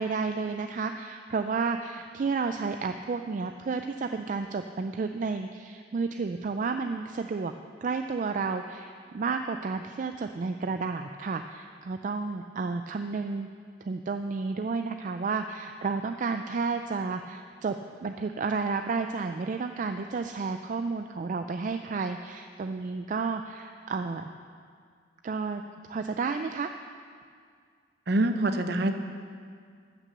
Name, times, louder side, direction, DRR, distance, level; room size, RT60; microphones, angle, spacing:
voice 1, 0.0-7.5 7.8-13.5 13.8-24.2 25.2-25.6 25.9-26.7, right 4 dB, 45° right, 7 dB, 0.3 m, -31 dB
voice 2, 28.1-28.9, right 2 dB, 60° right, 7 dB, 0.8 m, -25 dB
13.5 x 6.0 x 6.6 m, 2.1 s
head